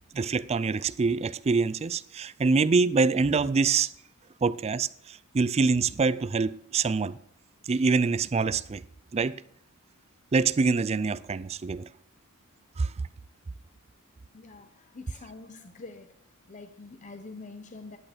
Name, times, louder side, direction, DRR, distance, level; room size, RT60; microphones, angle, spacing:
voice 1, 0.1-3.9 4.4-7.2 7.6-8.8 9.1-9.4 10.3-11.9 12.8-12.9, right 4 dB, 30° right, 0.3 m, -25 dB
voice 2, 14.3-16.1 16.5-18.0, left 3 dB, 35° left, 0.6 m, -45 dB
11.0 x 8.5 x 5.0 m
head